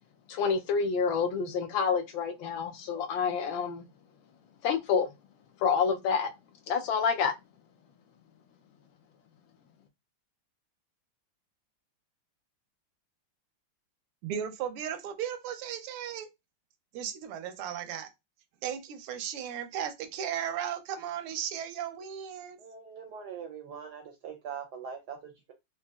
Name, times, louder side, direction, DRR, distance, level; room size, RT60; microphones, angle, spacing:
voice 1, 0.3-3.8 4.6-5.1 5.6-6.3 6.7-7.3, left 6 dB, 75° left, 1.2 m, -28 dB
voice 2, 14.2-16.3 16.9-18.1 18.6-22.6, right 9 dB, 85° right, 1.6 m, -36 dB
voice 3, 22.6-25.5, right 7 dB, 70° right, 1.0 m, -42 dB
4.0 x 2.9 x 2.3 m
omnidirectional pair, 2.4 m